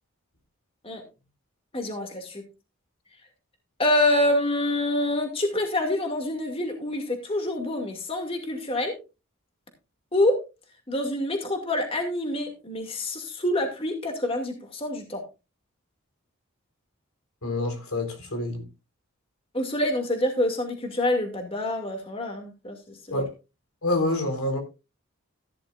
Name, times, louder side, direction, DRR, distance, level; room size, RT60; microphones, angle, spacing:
voice 1, 1.7-2.4 3.8-8.9 10.1-10.3 10.9-15.2 19.5-23.3, left 1 dB, 25° left, 2.4 m, -26 dB
voice 2, 17.4-18.6 23.1-23.2 23.8-24.6, left 2 dB, 85° left, 4.2 m, -27 dB
15.0 x 11.0 x 2.5 m
head